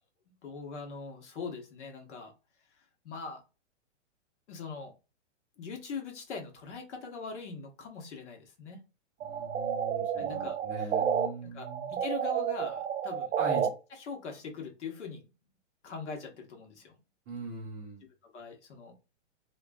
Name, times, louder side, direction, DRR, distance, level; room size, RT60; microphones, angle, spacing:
voice 1, 0.4-2.3 3.0-3.4 4.5-4.9 5.6-8.8 10.1-10.6 11.4-13.6 13.9-15.2 15.8-17.0 18.2-18.9, left 4 dB, 70° left, 3 dB, 1.2 m, -42 dB
voice 2, 9.2-11.9 13.4-13.7 17.3-18.0, right 2 dB, 10° right, -6 dB, 0.4 m, -40 dB
sound 1, 9.2-11.3 11.6-13.7, right 8 dB, 90° right, 0.6 m, -30 dB
3.0 x 2.5 x 2.3 m, 0.30 s
hypercardioid pair, 155°, 37 cm